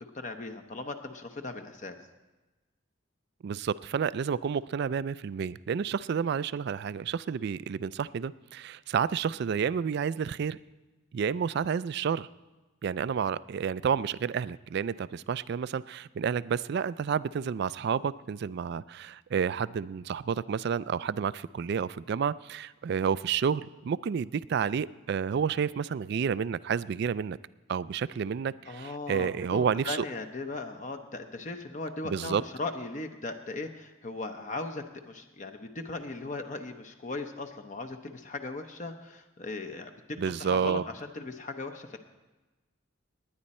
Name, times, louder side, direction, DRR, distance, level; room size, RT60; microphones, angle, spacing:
voice 1, 0.1-2.0 28.7-39.9 40.4-42.0, left 3 dB, 35° left, 6 dB, 0.8 m, -38 dB
voice 2, 3.4-10.6 11.1-12.3 12.8-27.4 27.7-30.0 32.0-32.4 40.2-40.8, right 7 dB, 55° right, 18 dB, 0.3 m, -30 dB
19.5 x 9.9 x 4.3 m, 1.1 s
head